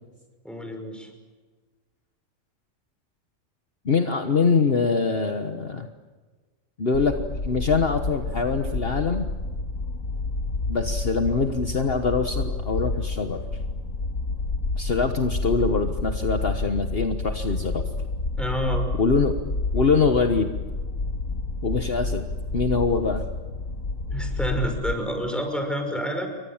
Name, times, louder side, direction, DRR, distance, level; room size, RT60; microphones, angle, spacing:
voice 1, 0.4-1.1 18.4-18.9 24.1-26.3, equal, ahead, 4 dB, 5.5 m, -28 dB
voice 2, 3.8-5.9 6.8-9.2 10.7-13.4 14.7-17.8 19.0-19.4 19.7-20.5 21.6-22.2 22.5-23.2, left 4 dB, 50° left, 6 dB, 1.5 m, -24 dB
sound 1, 6.9-24.9, left 3 dB, 75° left, 2.5 m, -29 dB
30.0 x 24.0 x 7.3 m, 1.4 s
omnidirectional pair, 1.3 m